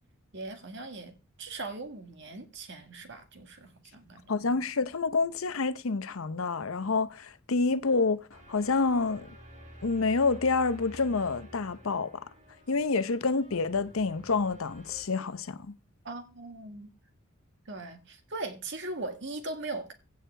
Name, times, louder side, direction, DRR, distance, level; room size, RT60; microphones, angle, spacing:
voice 1, 0.3-1.1 1.4-4.3 16.0-16.9 17.7-19.9, right 2 dB, 55° right, 1.8 m, -39 dB
voice 2, 4.3-9.3 9.8-12.3 12.7-15.7, left 4 dB, 70° left, 0.7 m, -28 dB
sound 1, 8.3-15.0, equal, 35° right, 3.2 m, -50 dB
16.0 x 6.2 x 3.3 m
head